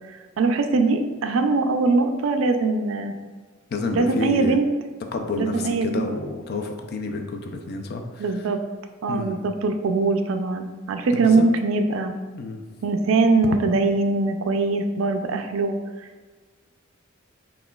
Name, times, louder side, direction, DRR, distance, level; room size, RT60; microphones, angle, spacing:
voice 1, 0.4-3.2 3.9-4.7 5.3-6.1 8.2-8.6 9.0-12.1 12.8-16.3, right 3 dB, 70° right, 6 dB, 0.4 m, -22 dB
voice 2, 3.7-4.6 5.1-8.2 9.1-9.4 11.1-11.5 12.4-12.6, left 2 dB, 50° left, 4 dB, 0.4 m, -29 dB
5.6 x 2.4 x 2.3 m, 1.4 s
head